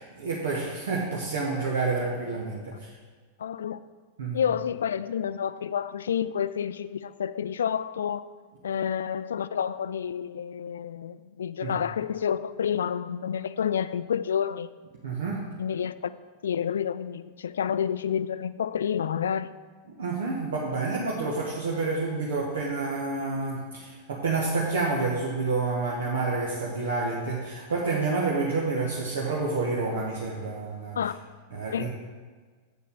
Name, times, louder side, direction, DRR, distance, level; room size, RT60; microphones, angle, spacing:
voice 1, 0.0-2.9 4.2-4.4 11.6-11.8 15.0-15.4 20.0-31.0 31.5-31.9, right 3 dB, 65° right, -3 dB, 1.3 m, -29 dB
voice 2, 3.4-3.8 4.3-8.3 8.6-14.7 15.6-16.1 16.4-19.5 31.0-31.1 31.7-31.9, left 8 dB, 65° left, 15 dB, 0.3 m, -29 dB
8.5 x 6.9 x 5.3 m, 1.5 s
figure-of-eight pair, 90°, 0 cm